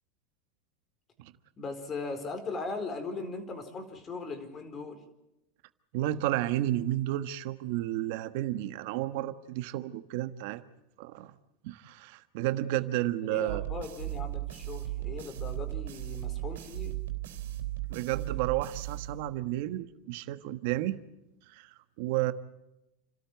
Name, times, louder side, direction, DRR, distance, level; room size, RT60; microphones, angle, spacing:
voice 1, 1.6-5.0 13.3-17.0, left 3 dB, 30° left, 8 dB, 4.4 m, -39 dB
voice 2, 5.9-10.7 11.0-11.3 11.6-13.6 17.9-21.0 21.5-22.3, right 15 dB, 65° right, 11 dB, 1.4 m, -32 dB
sound 1, 13.5-19.6, right 16 dB, 85° right, 3.6 m, -36 dB
29.5 x 13.0 x 9.2 m, 0.93 s
supercardioid pair, 120°, 0 cm